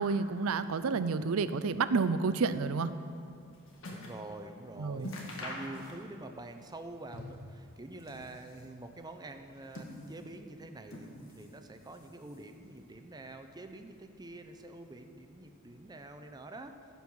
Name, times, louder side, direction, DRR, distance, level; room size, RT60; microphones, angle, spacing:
voice 1, 0.0-2.9 4.8-5.1, right 4 dB, 75° right, 13 dB, 0.5 m, -30 dB
sound 1, 3.1-4.3 4.6-4.7 5.0-6.3 6.6-7.5 7.9-8.7 9.4-10.4 10.9-11.6 11.9-12.6 13.3-13.4, left 1 dB, 65° left, 1.6 m, -45 dB
voice 2, 3.9-16.7, right 2 dB, 20° right, 7 dB, 0.6 m, -46 dB
14.5 x 5.5 x 6.1 m, 2.4 s
head